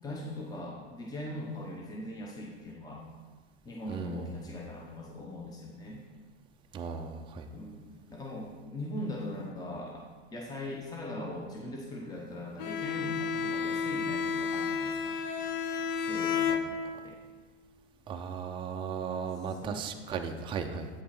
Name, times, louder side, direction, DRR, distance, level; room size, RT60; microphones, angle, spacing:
voice 1, 0.0-3.0 3.6-6.0 7.5-7.8 8.1-10.0 10.3-15.2 15.9-17.2 19.5-19.9, left 1 dB, 10° left, -2 dB, 0.9 m, -40 dB
voice 2, 3.9-4.5 6.7-7.5 18.1-20.9, right 6 dB, 15° right, 4 dB, 0.5 m, -36 dB
Bowed string instrument, 12.6-17.2, left 6 dB, 60° left, 0.8 m, -32 dB
8.6 x 5.5 x 4.2 m, 1.4 s
supercardioid pair, 130°, 32 cm